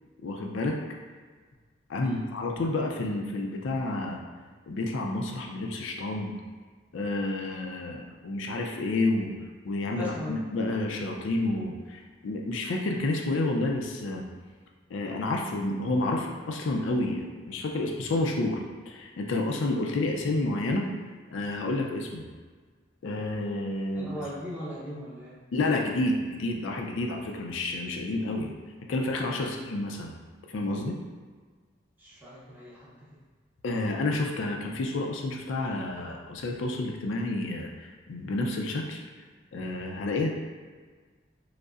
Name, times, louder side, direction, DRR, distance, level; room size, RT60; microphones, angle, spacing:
voice 1, 0.2-0.8 1.9-4.2 4.7-6.3 6.9-9.3 9.6-14.2 14.9-18.6 18.9-20.9 21.3-22.2 23.0-24.1 25.5-28.5 28.9-30.1 30.5-31.0 33.6-39.0 39.5-40.3, left 2 dB, 75° left, 1 dB, 0.4 m, -30 dB
voice 2, 9.9-10.4 23.9-25.4 29.4-29.6 32.0-33.0, left 1 dB, 10° right, -8 dB, 0.7 m, -39 dB
5.0 x 2.0 x 2.4 m, 1.5 s
head